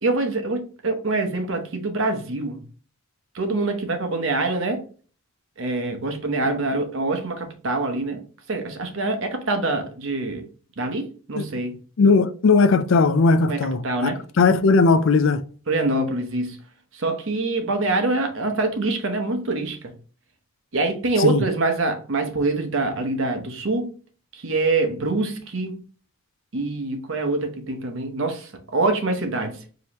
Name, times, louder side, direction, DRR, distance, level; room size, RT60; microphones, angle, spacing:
voice 1, 0.0-2.6 3.3-4.8 5.6-8.2 8.5-10.4 10.8-11.8 13.5-14.2 15.7-16.6 16.9-19.9 20.7-23.9 24.3-25.8 26.5-29.6, right 2 dB, 60° right, 0.9 m, -25 dB
voice 2, 12.0-14.1 14.4-15.4 21.2-21.4, left 4 dB, 60° left, 0.4 m, -18 dB
5.1 x 3.0 x 2.9 m
head